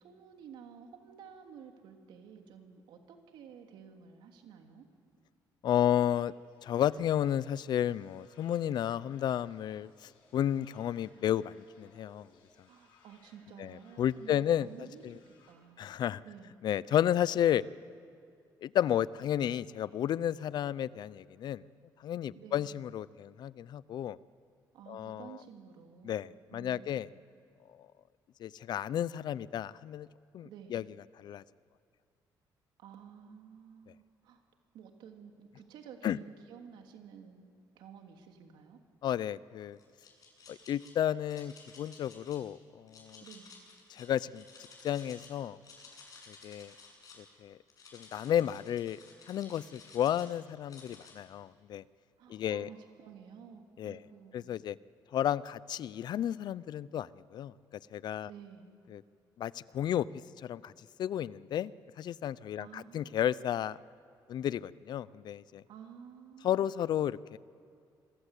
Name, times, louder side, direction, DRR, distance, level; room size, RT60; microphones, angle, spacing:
voice 1, 0.0-4.9 12.7-15.2 15.4-15.8 16.2-16.5 22.3-22.7 24.7-27.1 30.4-30.8 32.8-34.4 34.7-37.5 37.7-38.8 43.2-43.5 52.2-54.5 58.2-58.7 62.6-63.1 65.7-66.7, right 7 dB, 90° right, 4 dB, 3.0 m, -52 dB
voice 2, 5.6-6.3 6.6-12.3 13.6-14.7 15.0-15.2 15.8-16.2 16.6-17.6 18.6-21.6 22.0-24.2 24.9-25.4 26.0-27.1 28.4-30.1 30.3-30.8 31.2-31.4 36.0-36.2 39.0-39.8 40.5-43.2 43.9-44.4 44.8-45.6 46.3-46.7 47.2-47.6 47.9-49.0 49.3-51.8 52.3-52.7 53.8-54.0 54.3-54.8 55.1-57.5 57.9-58.3 58.9-59.0 59.4-60.1 60.4-60.7 61.0-61.7 62.0-63.8 64.3-65.6 66.4-67.4, left 10 dB, 65° left, 19 dB, 0.6 m, -32 dB
sound 1, 6.0-15.5, left 4 dB, 90° left, 6.5 m, -65 dB
sound 2, 39.8-40.9 41.3-42.4 42.9-45.3 45.6-47.2 47.7-50.3 50.7-51.1, left 4 dB, 50° left, 7.9 m, -54 dB
27.5 x 23.0 x 8.4 m, 2.3 s
cardioid pair, 105°, 8 cm